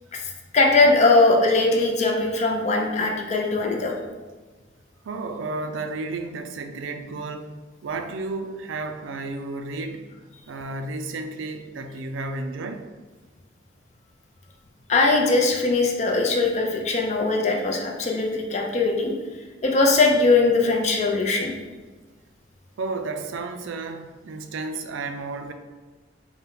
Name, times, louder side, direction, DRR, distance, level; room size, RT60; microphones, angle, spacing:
voice 1, 0.5-4.0 14.9-19.1 19.6-21.6, left 3 dB, 35° left, 1 dB, 0.5 m, -20 dB
voice 2, 5.0-7.5 7.8-10.1 10.5-12.9 22.8-25.5, right 3 dB, 85° right, 6 dB, 0.4 m, -32 dB
4.1 x 2.2 x 3.8 m, 1.3 s
head